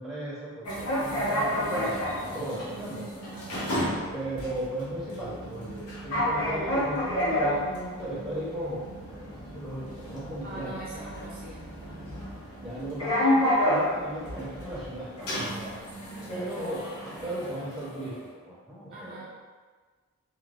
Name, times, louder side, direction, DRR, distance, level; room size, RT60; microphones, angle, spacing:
voice 1, 0.0-3.0 4.1-10.8 12.6-15.7 16.3-16.8 17.2-18.1 18.5-19.2, right 1 dB, ahead, -10 dB, 0.7 m, -36 dB
sound 1, 0.7-18.2, left 1 dB, 85° left, 0.7 m, -31 dB
voice 2, 1.7-2.1 3.3-3.9 10.4-12.2 16.5-16.9 18.9-19.4, right 2 dB, 40° right, -6 dB, 0.4 m, -43 dB
2.5 x 2.2 x 3.2 m, 1.4 s
head